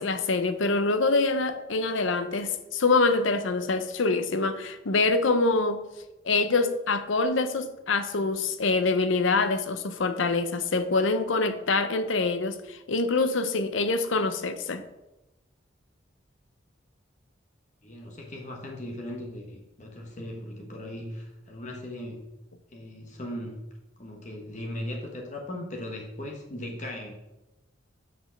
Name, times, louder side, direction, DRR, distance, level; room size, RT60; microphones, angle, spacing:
voice 1, 0.0-5.8 6.2-14.8, left 3 dB, 75° left, 0.7 m, -25 dB
voice 2, 17.8-22.2 22.7-23.6 24.0-27.1, left 1 dB, 35° left, 1.2 m, -38 dB
6.2 x 5.1 x 6.3 m
head